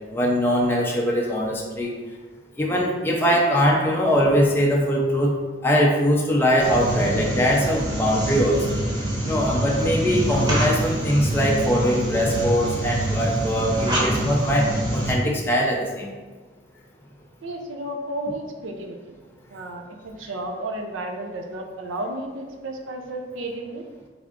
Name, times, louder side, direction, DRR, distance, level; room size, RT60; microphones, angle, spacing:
voice 1, 0.1-1.9 2.6-5.3 5.6-8.8 9.2-16.1, equal, 10° left, -2 dB, 0.4 m, -21 dB
sound 1, 6.6-15.1, right 1 dB, 20° right, 0.9 m, -25 dB
voice 2, 17.4-19.0 19.5-23.8, right 1 dB, 85° right, 4 dB, 0.6 m, -32 dB
3.6 x 3.5 x 3.6 m, 1.3 s
head